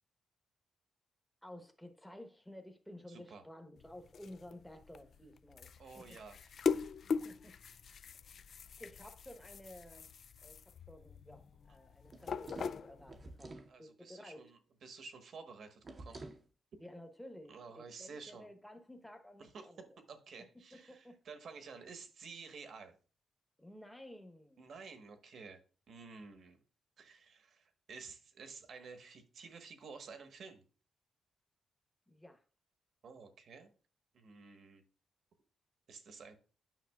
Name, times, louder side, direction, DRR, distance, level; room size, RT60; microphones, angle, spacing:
voice 1, 1.4-6.2 7.2-7.6 8.8-10.1 10.4-14.4 16.8-19.9 20.7-21.2 23.6-24.7 32.1-32.4, left 1 dB, 5° left, 1.0 m, -53 dB
voice 2, 3.1-3.4 5.8-6.7 13.7-16.2 17.5-18.5 19.4-23.0 24.6-25.6 25.9-26.6 27.0-30.6 33.0-33.7 34.1-34.8 35.9-36.4, right 5 dB, 60° right, 1.2 m, -52 dB
sound 1, 3.8-13.3, left 6 dB, 55° left, 0.3 m, -41 dB
sound 2, 12.0-13.7 15.8-16.5, right 2 dB, 35° right, 0.7 m, -49 dB
9.2 x 5.9 x 2.3 m
cardioid pair, 125°, 0 cm